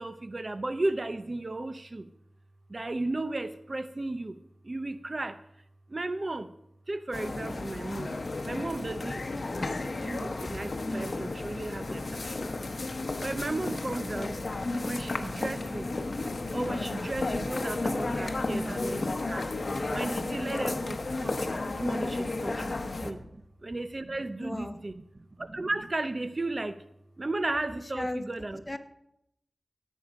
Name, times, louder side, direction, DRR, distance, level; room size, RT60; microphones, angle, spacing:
voice 1, 0.0-2.1 2.7-4.4 4.6-5.4 5.9-6.5 6.9-8.2 8.4-9.3 9.5-12.5 13.2-14.3 14.8-15.9 16.5-19.5 19.9-24.9 25.4-26.8 27.2-28.6, right 2 dB, 40° right, 12 dB, 0.6 m, -35 dB
sound 1, 7.1-23.1, left 2 dB, 55° left, 1.0 m, -33 dB
voice 2, 18.0-18.5 20.4-20.7 24.4-24.8 27.8-28.3 28.7-28.8, left 1 dB, 20° left, 8 dB, 1.0 m, -36 dB
16.5 x 8.4 x 5.2 m, 0.80 s
wide cardioid pair, 65°, 0 cm